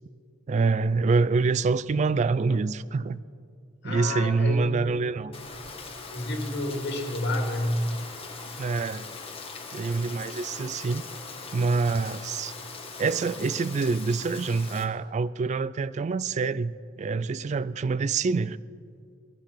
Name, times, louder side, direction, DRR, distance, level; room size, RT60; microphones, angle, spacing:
voice 1, 0.5-3.2 3.8-5.4 8.6-9.1 9.7-11.1 11.5-12.5 13.0-18.6, right 4 dB, 35° right, 0.3 m, -26 dB
voice 2, 3.8-4.9 6.1-8.0, left 1 dB, 60° left, 2.3 m, -29 dB
Rain, 5.3-14.8, left 4 dB, 30° left, 1.6 m, -41 dB
21.0 x 12.0 x 5.7 m
head